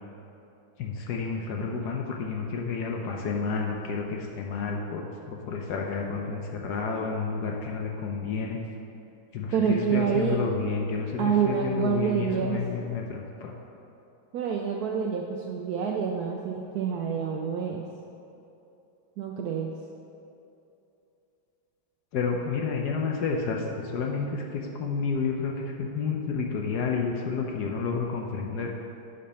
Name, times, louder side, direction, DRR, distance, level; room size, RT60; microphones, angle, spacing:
voice 1, 0.8-8.6 9.3-13.5 22.1-23.6 23.9-28.7, left 5 dB, 65° left, 1 dB, 1.1 m, -30 dB
voice 2, 9.5-10.4 11.2-12.6 14.3-17.8 19.2-19.7, right 7 dB, 75° right, 1 dB, 0.9 m, -27 dB
8.5 x 5.3 x 5.6 m, 2.8 s
omnidirectional pair, 2.2 m